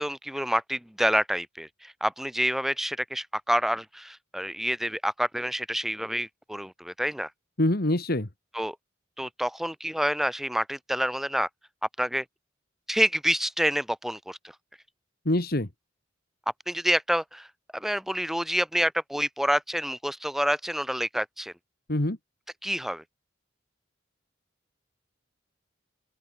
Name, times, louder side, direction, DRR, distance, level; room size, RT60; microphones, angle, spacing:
voice 1, 0.0-7.3 8.5-8.8 9.2-11.5 12.0-12.2 12.9-14.4 16.7-17.5 17.7-21.5 22.6-23.0, equal, ahead, 0.7 m, -28 dB
voice 2, 7.6-8.3 15.3-15.7 21.9-22.2, left 1 dB, 50° left, 1.9 m, -25 dB
open air
head